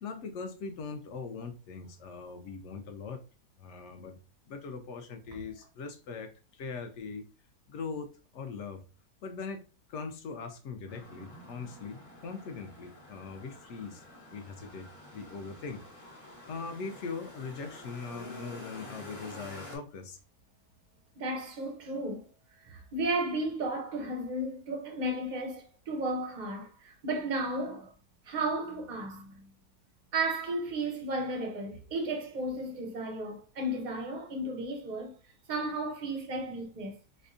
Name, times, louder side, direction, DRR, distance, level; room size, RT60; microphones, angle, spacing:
voice 1, 0.0-3.2 3.6-4.2 4.5-6.3 6.6-7.2 7.7-8.8 9.2-9.6 9.9-14.0 14.3-15.8 16.5-20.2, left 4 dB, 65° left, 0.8 m, -41 dB
sound 1, 10.9-19.8, left 1 dB, 25° left, 0.9 m, -49 dB
voice 2, 21.2-22.3 22.6-27.9 28.3-29.5 30.1-35.1 35.5-37.0, right 2 dB, 50° right, 0.5 m, -34 dB
4.2 x 2.2 x 2.5 m
omnidirectional pair, 1.6 m